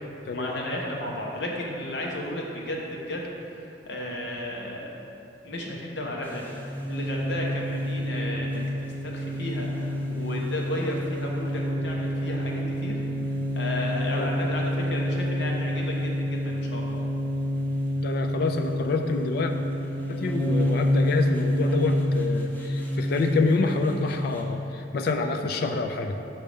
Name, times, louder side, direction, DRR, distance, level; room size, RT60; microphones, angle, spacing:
voice 1, 0.3-2.8 3.1-4.9 5.4-6.4 6.9-13.0 13.5-17.0, left 1 dB, 80° left, -2 dB, 1.0 m, -33 dB
sound 1, 6.2-24.5, left 1 dB, 10° left, 0.7 m, -28 dB
voice 2, 18.0-19.5 20.1-26.2, left 3 dB, 60° left, 5 dB, 0.4 m, -27 dB
6.3 x 5.5 x 3.5 m, 2.7 s
head